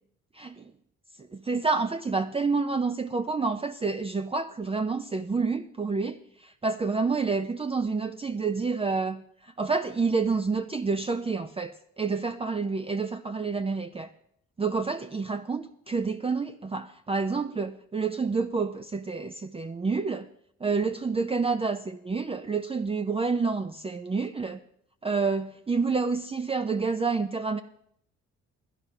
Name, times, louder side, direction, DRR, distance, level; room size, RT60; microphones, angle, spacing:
voice 1, 0.3-0.7 1.2-14.1 14.6-20.3 20.6-24.6 25.0-27.6, right 4 dB, 20° right, 8 dB, 0.5 m, -28 dB
11.0 x 10.5 x 5.7 m, 0.71 s
cardioid pair, 90°, 30 cm